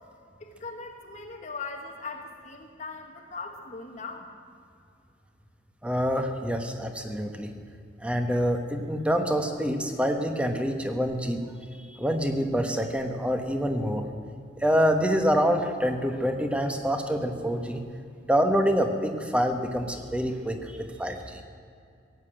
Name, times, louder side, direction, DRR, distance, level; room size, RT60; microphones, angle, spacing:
voice 1, 0.4-4.3, left 4 dB, 40° left, 3 dB, 1.1 m, -39 dB
voice 2, 5.8-7.5 8.0-11.4 11.8-14.1 14.6-17.8 18.3-21.4, equal, 5° right, 5 dB, 1.1 m, -26 dB
17.0 x 8.2 x 8.8 m, 2.4 s
head